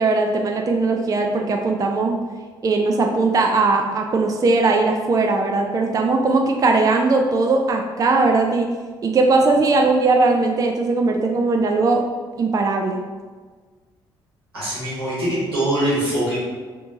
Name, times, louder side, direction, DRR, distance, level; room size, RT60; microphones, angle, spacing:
voice 1, 0.0-2.2 2.6-8.7 9.0-12.0 12.4-13.0, right 3 dB, 30° right, 2 dB, 0.4 m, -19 dB
voice 2, 14.5-16.4, right 1 dB, 85° right, -10 dB, 1.2 m, -23 dB
3.4 x 2.7 x 2.7 m, 1.5 s
figure-of-eight pair, 45°, 13 cm